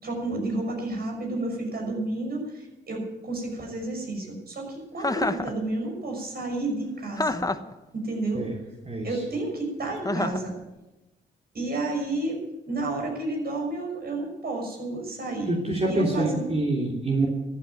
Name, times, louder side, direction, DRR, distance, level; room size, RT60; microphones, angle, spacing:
voice 1, 0.0-7.4 7.9-8.4 9.0-10.5 11.5-12.4 12.7-15.6 15.8-16.5, right 2 dB, 55° right, 1 dB, 6.0 m, -31 dB
Chuckle chortle, 5.0-5.5 7.2-7.7 10.0-10.5, left 2 dB, 20° left, 1.0 m, -27 dB
voice 2, 15.5-17.3, right 2 dB, 30° right, -2 dB, 3.3 m, -25 dB
13.5 x 9.0 x 9.2 m, 1.0 s
cardioid pair, 60°, 19 cm